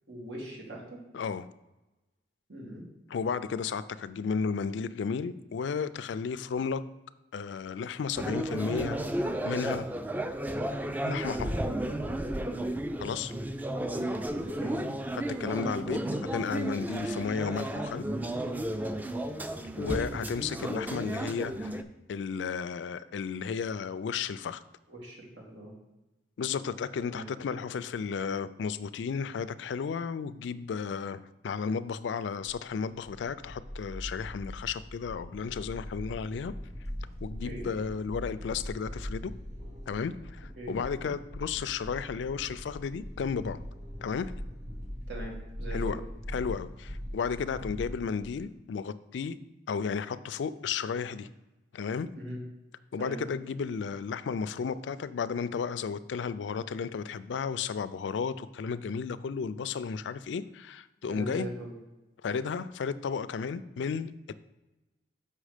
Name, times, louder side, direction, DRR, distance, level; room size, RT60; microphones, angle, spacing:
voice 1, 0.1-1.0 2.5-2.8 11.7-12.0 14.5-14.8 24.9-25.7 27.0-27.2 37.4-37.7 40.6-41.1 45.1-46.0 52.1-52.4 53.0-53.2 61.1-61.7, right 1 dB, 80° right, -2 dB, 2.4 m, -41 dB
voice 2, 1.1-1.5 3.1-6.8 7.3-9.0 9.4-9.9 11.0-11.6 13.0-13.3 15.1-18.0 19.8-21.8 22.1-24.6 26.4-36.5 37.2-39.3 39.9-43.6 44.0-44.3 45.7-46.0 46.3-49.4 49.7-51.3 51.7-52.1 52.9-61.5 62.2-64.3, left 6 dB, 75° left, 15 dB, 0.4 m, -33 dB
sound 1, 8.2-21.8, right 1 dB, 10° right, 0.3 m, -33 dB
sound 2, 32.5-48.5, equal, 40° right, 1.5 m, -41 dB
6.4 x 5.6 x 5.0 m, 1.0 s
head